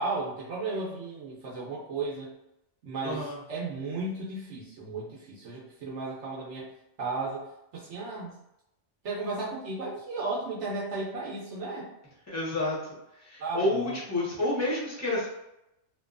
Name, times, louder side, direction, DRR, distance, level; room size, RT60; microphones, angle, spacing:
voice 1, 0.0-2.3 2.8-6.7 7.0-7.5 7.7-8.4 9.0-11.9 13.4-14.0, right 3 dB, 75° right, -5 dB, 0.9 m, -34 dB
voice 2, 3.0-3.4 12.3-12.8 13.2-15.3, left 1 dB, 15° left, -7 dB, 0.9 m, -29 dB
2.8 x 2.2 x 2.4 m, 0.86 s
omnidirectional pair, 1.2 m